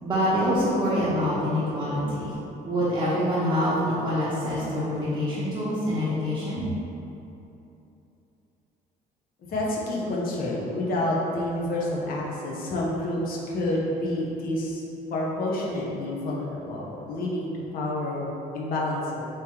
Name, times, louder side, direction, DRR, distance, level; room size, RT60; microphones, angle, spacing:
voice 1, 0.0-2.3 2.6-6.6, equal, 20° right, -12 dB, 0.9 m, -25 dB
voice 2, 9.5-14.8 15.1-18.3 18.5-19.2, left 1 dB, 60° left, -3 dB, 0.8 m, -28 dB
3.1 x 2.9 x 3.6 m, 2.9 s
cardioid pair, 110°, 17 cm